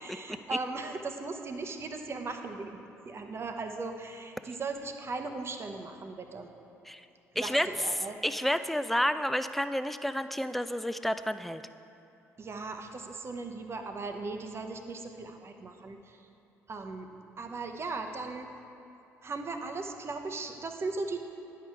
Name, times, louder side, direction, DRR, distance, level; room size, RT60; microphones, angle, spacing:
voice 1, 0.0-2.8 3.0-6.5 7.4-8.2 12.4-16.2 16.7-17.1 17.4-18.5 19.2-21.3, right 3 dB, 35° right, 5 dB, 0.8 m, -38 dB
voice 2, 7.4-11.6, equal, ahead, 11 dB, 0.3 m, -30 dB
10.5 x 5.7 x 4.7 m, 2.9 s
figure-of-eight pair, 50°, 8 cm